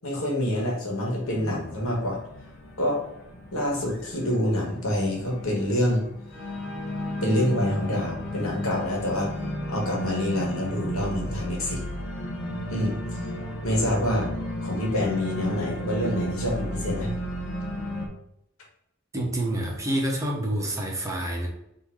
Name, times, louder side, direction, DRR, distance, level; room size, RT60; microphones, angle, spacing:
voice 1, 0.0-2.2 2.8-3.0 3.5-6.0 7.2-9.3 9.7-11.8 12.7-13.0 13.6-14.3 14.6-17.1, left 1 dB, 85° left, -2 dB, 1.5 m, -26 dB
Organ, 1.2-18.1, equal, 60° left, 0.9 m, -34 dB
voice 2, 19.1-21.5, right 1 dB, 15° right, -1 dB, 0.8 m, -27 dB
3.8 x 2.7 x 4.6 m, 0.80 s
head